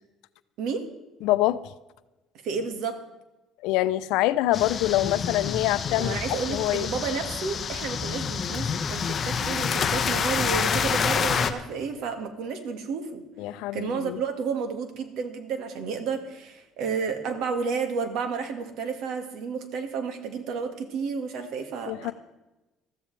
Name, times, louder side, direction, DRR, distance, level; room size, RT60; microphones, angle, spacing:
voice 1, 1.2-1.7 3.6-6.2 6.5-6.9 13.4-14.2 21.9-22.1, left 15 dB, 85° left, 0.6 m, -25 dB
voice 2, 2.4-3.0 5.9-13.2 13.7-22.1, right 5 dB, 70° right, 1.9 m, -31 dB
sound 1, 4.5-11.5, left 6 dB, 35° left, 0.9 m, -28 dB
21.5 x 14.0 x 3.4 m
cardioid pair, 135°, 0 cm